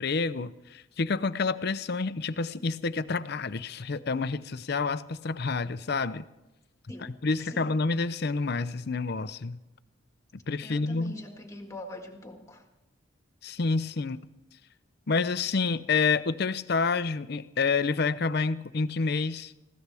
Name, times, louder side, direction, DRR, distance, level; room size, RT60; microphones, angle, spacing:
voice 1, 0.0-6.2 7.0-9.6 10.5-11.1 13.4-14.2 15.1-19.7, left 4 dB, 50° left, 13 dB, 0.6 m, -28 dB
voice 2, 6.9-7.8 10.6-12.6, left 1 dB, 15° left, 3 dB, 1.8 m, -43 dB
21.0 x 16.0 x 3.5 m, 0.99 s
head